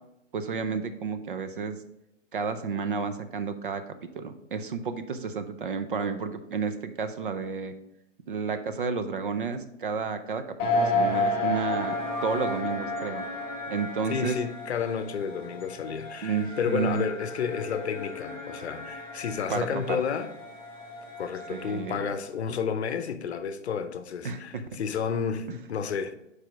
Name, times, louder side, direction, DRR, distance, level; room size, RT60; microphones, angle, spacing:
voice 1, 0.3-1.8 2.3-3.8 4.1-7.7 8.3-11.9 12.2-13.2 13.7-14.4 16.2-17.0 19.5-20.0 21.5-22.0 24.2-24.8, right 5 dB, 45° right, 0.5 m, -31 dB
sound 1, 10.6-22.0, left 2 dB, ahead, 0.5 m, -32 dB
voice 2, 14.1-20.3 21.2-26.2, left 7 dB, 60° left, 0.7 m, -31 dB
4.8 x 4.6 x 5.1 m
hypercardioid pair, 180°, 38 cm